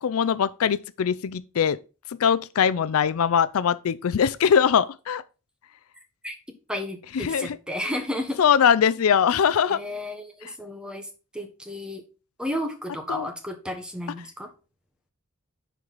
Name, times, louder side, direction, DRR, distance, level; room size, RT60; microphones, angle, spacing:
voice 1, 0.0-1.8 2.2-5.2 7.1-7.5 8.4-9.8 13.1-13.3, left 7 dB, 75° left, 0.4 m, -21 dB
voice 2, 6.7-8.4 9.7-12.0 12.4-14.5, left 1 dB, 5° right, 1.2 m, -33 dB
9.7 x 4.6 x 4.0 m
head